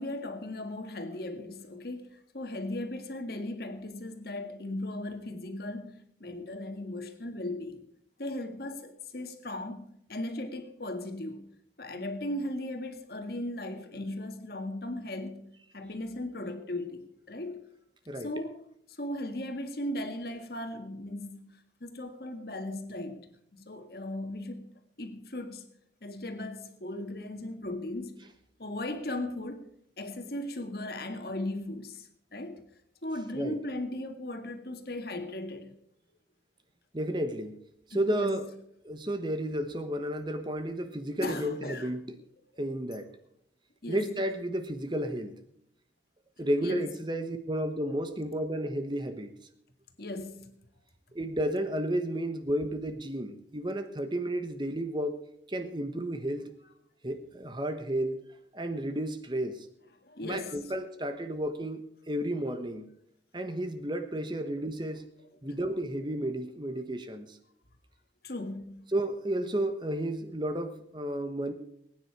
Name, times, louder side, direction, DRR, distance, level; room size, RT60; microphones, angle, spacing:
voice 1, 0.0-2.1 2.3-5.9 6.2-7.8 8.2-11.5 11.8-15.4 15.7-17.7 18.2-18.6 19.0-21.5 21.8-23.2 23.5-24.7 25.0-25.7 26.0-28.2 28.6-29.6 30.0-32.6 33.0-35.7 37.9-38.4 41.2-41.9 43.8-44.1 46.6-46.9 50.0-50.5 60.1-60.6 68.2-68.8, left 1 dB, 55° left, 1.9 m, -37 dB
voice 2, 36.9-37.6 37.9-38.4 38.8-42.1 42.6-43.1 43.9-45.3 46.4-49.3 51.1-55.2 55.5-56.5 57.0-58.2 58.5-59.6 60.2-61.8 62.1-62.9 63.3-65.0 65.4-67.4 68.9-71.5, right 1 dB, 25° right, 1.1 m, -32 dB
20.0 x 9.7 x 4.8 m
head